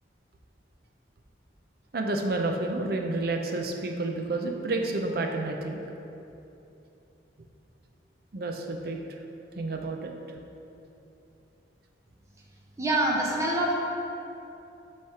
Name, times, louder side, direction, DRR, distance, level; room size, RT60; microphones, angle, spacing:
voice 1, 1.9-5.8 8.3-9.0 9.6-10.1, right 2 dB, 55° right, 2 dB, 0.6 m, -30 dB
voice 2, 12.8-13.7, right 1 dB, 15° right, -2 dB, 0.8 m, -25 dB
8.5 x 3.2 x 5.7 m, 2.8 s
head